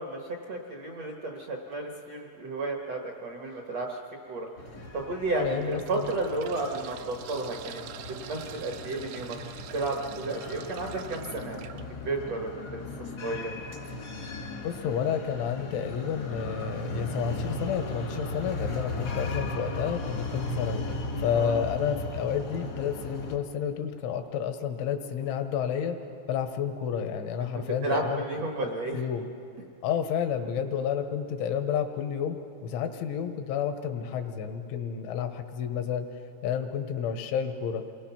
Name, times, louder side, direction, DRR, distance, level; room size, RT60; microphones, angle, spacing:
voice 1, 0.0-4.0 4.3-4.5 4.9-7.8 8.1-9.4 9.7-12.8 13.2-13.5 21.3-21.6 27.5-29.0, right 2 dB, 70° right, 1 dB, 1.5 m, -32 dB
sound 1, 3.5-3.7 4.4-4.5 5.4-11.8 13.4-13.5 13.8-13.9, right 11 dB, 85° right, 3.3 m, -46 dB
sound 2, 4.6-23.4, left 2 dB, 60° left, 1.0 m, -37 dB
voice 2, 5.4-6.1 14.6-20.8 21.2-26.0 26.3-28.2 28.9-29.3 29.8-32.4 32.6-36.1 36.4-37.8, left 8 dB, 85° left, 6 dB, 3.6 m, -30 dB
28.5 x 21.5 x 5.9 m, 2.7 s
omnidirectional pair, 5.4 m